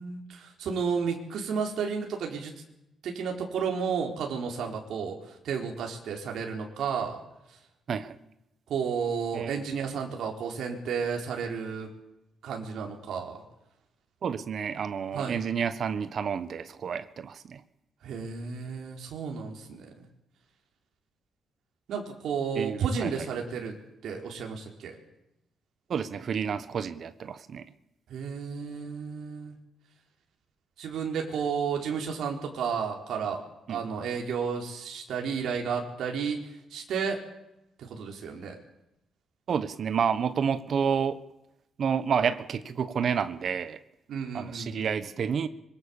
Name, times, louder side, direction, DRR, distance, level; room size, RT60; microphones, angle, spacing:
voice 1, 0.0-2.5 3.0-7.2 7.5-7.6 8.7-11.9 12.4-13.4 15.1-15.4 18.0-20.1 21.9-23.8 24.0-25.0 28.1-29.5 30.8-33.4 33.7-37.2 37.8-38.6 44.1-44.9, right 6 dB, 70° right, 1 dB, 4.3 m, -32 dB
voice 2, 14.2-17.6 22.6-23.1 25.9-27.7 33.7-33.8 39.5-41.2 41.8-43.8 44.3-45.5, right 7 dB, 45° right, 12 dB, 1.3 m, -29 dB
25.0 x 22.5 x 7.3 m, 0.87 s
cardioid pair, 150°, 0 cm